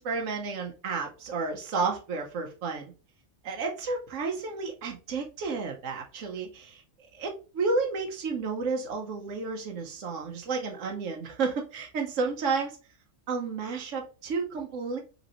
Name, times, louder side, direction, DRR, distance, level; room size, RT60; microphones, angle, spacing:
voice 1, 0.0-2.9 3.4-6.8 7.1-12.8 13.3-15.0, right 4 dB, 85° right, 2 dB, 1.2 m, -31 dB
5.4 x 3.1 x 2.9 m, 0.33 s
omnidirectional pair, 1.3 m